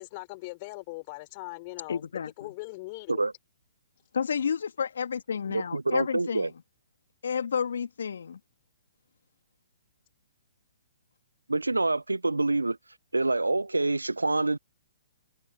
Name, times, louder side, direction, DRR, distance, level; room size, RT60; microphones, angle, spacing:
voice 1, 0.0-2.0 2.4-3.3, left 24 dB, 35° left, 3.5 m, -40 dB
voice 2, 1.9-2.5 4.1-6.5 7.2-8.4, left 7 dB, 65° left, 1.7 m, -31 dB
voice 3, 5.5-6.5 11.5-12.8 13.1-14.6, right 2 dB, 85° right, 0.3 m, -26 dB
figure-of-eight pair, 125°, 0 cm